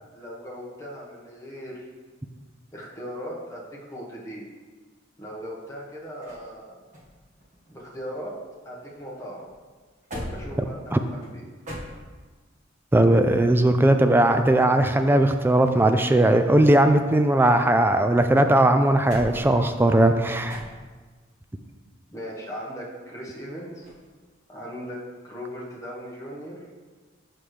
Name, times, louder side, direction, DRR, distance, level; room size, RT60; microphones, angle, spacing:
voice 1, 0.1-1.9 2.7-4.5 5.2-6.8 7.7-8.4 8.6-9.5 10.1-11.4 22.1-23.9 24.5-26.6, equal, 15° left, -4 dB, 1.3 m, -38 dB
sound 1, 5.5-8.6 8.9-12.5 14.2-16.0 16.3-18.1 18.5-21.2 23.8-24.1, equal, 40° right, 1.5 m, -42 dB
voice 2, 12.9-20.6, right 1 dB, 10° right, 7 dB, 0.3 m, -18 dB
7.2 x 5.9 x 3.3 m, 1.4 s
head